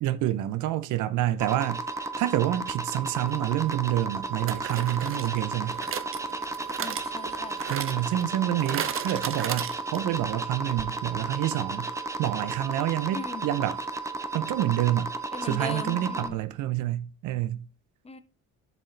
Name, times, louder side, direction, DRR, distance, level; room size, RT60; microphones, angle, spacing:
voice 1, 0.0-5.8 7.7-13.8 14.3-15.1 15.4-17.7, right 13 dB, 85° right, 0.6 m, -28 dB
sound 1, 1.4-16.3, right 3 dB, 10° right, 0.8 m, -34 dB
sound 2, 3.2-3.3 4.5-10.2 10.5-10.6 10.8-10.9, right 9 dB, 45° right, 0.6 m, -36 dB
voice 2, 6.8-7.6 13.1-13.4 15.3-16.4 18.0-18.2, left 4 dB, 20° left, 0.8 m, -38 dB
7.3 x 5.4 x 3.2 m
cardioid pair, 90°, 30 cm